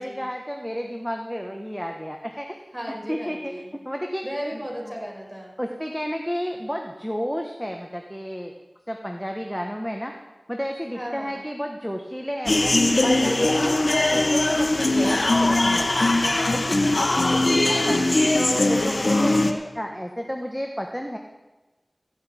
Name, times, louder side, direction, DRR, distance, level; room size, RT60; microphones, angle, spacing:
voice 1, 0.0-2.5 2.9-3.5 3.8-4.2 4.5-4.9 5.6-8.5 8.9-10.1 10.5-12.8 13.0-13.8 14.1-17.1 17.4-21.2, equal, ahead, 3 dB, 1.2 m, -32 dB
voice 2, 2.7-3.7 4.2-5.6 10.9-11.4 16.9-18.6, equal, 15° right, -1 dB, 4.8 m, -36 dB
sound 1, 12.5-19.5, left 2 dB, 65° left, 1.2 m, -20 dB
14.5 x 6.6 x 9.0 m, 1.1 s
wide cardioid pair, 45°, 0 cm